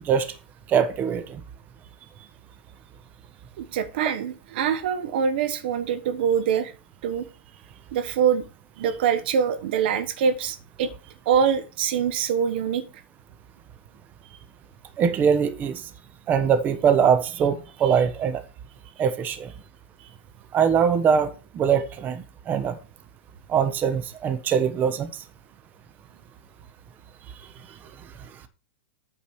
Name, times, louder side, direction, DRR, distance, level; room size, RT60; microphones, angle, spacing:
voice 1, 0.7-1.4 15.0-15.8 16.3-18.4 19.0-19.5 20.5-22.8 23.5-25.1, right 7 dB, 30° right, 1.2 m, -22 dB
voice 2, 3.6-6.7 7.0-7.2 7.9-8.4 8.8-10.9 11.3-12.8, right 7 dB, 65° right, 1.2 m, -24 dB
8.5 x 5.0 x 6.3 m
hypercardioid pair, 115°, 6 cm